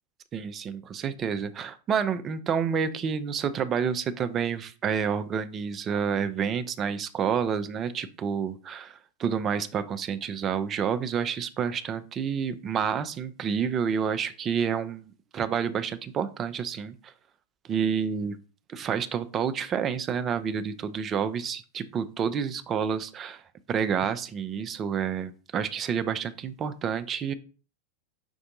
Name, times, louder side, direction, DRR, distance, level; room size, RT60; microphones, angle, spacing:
voice 1, 0.3-15.0 15.3-16.9 17.7-18.4 18.7-23.4 23.7-27.3, right 7 dB, 25° right, 11 dB, 0.4 m, -29 dB
5.3 x 2.6 x 3.8 m, 0.38 s
figure-of-eight pair, 90°, 0 cm